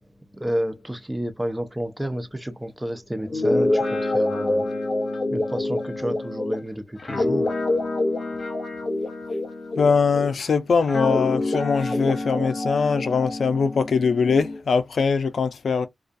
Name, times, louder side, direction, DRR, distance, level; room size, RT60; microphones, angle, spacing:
voice 1, 0.3-4.7 5.3-7.5, equal, 10° right, 0.5 m, -30 dB
Guitar, 3.2-10.4 10.9-14.6, left 2 dB, 50° left, 1.0 m, -26 dB
voice 2, 9.8-15.9, left 5 dB, 70° left, 0.4 m, -22 dB
2.3 x 2.3 x 2.5 m
wide cardioid pair, 80°, 0 cm